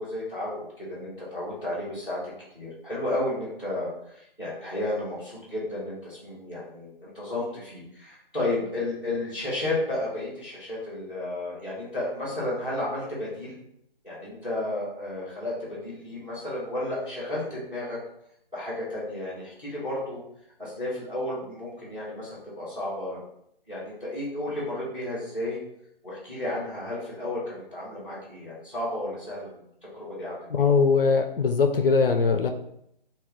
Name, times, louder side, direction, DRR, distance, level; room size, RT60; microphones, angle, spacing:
voice 1, 0.0-2.2 2.5-13.6 14.0-18.0 18.5-20.2 20.6-23.2 23.7-25.6 26.0-30.3, left 1 dB, 5° right, -11 dB, 1.0 m, -32 dB
voice 2, 30.5-32.5, left 4 dB, 65° left, 6 dB, 0.5 m, -21 dB
3.0 x 2.9 x 3.6 m, 0.75 s
figure-of-eight pair, 150°, 30 cm